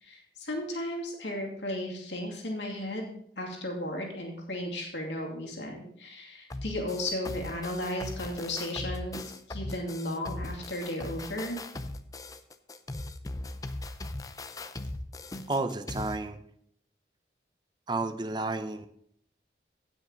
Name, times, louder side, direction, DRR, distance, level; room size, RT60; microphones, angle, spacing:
voice 1, 0.0-11.6, left 1 dB, 85° left, 0 dB, 2.5 m, -35 dB
sound 1, 6.5-16.2, left 2 dB, 20° left, 0.5 m, -39 dB
voice 2, 15.5-16.4 17.9-18.9, right 2 dB, 25° right, 10 dB, 0.6 m, -31 dB
16.0 x 6.3 x 3.9 m, 0.69 s
head